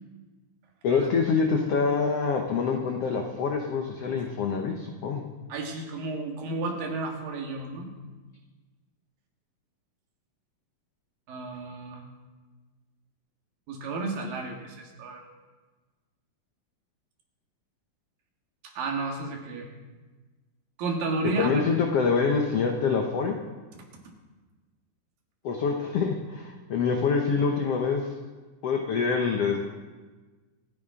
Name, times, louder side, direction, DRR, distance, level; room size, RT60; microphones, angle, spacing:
voice 1, 0.8-5.3 21.4-23.4 25.4-28.1 28.6-29.7, left 5 dB, 90° left, 2 dB, 1.3 m, -26 dB
voice 2, 5.5-7.9 11.3-12.0 13.7-15.2 18.6-19.7 20.8-21.7 24.1-24.2, right 3 dB, 70° right, 2 dB, 3.4 m, -32 dB
25.5 x 9.9 x 3.8 m, 1.3 s
omnidirectional pair, 4.2 m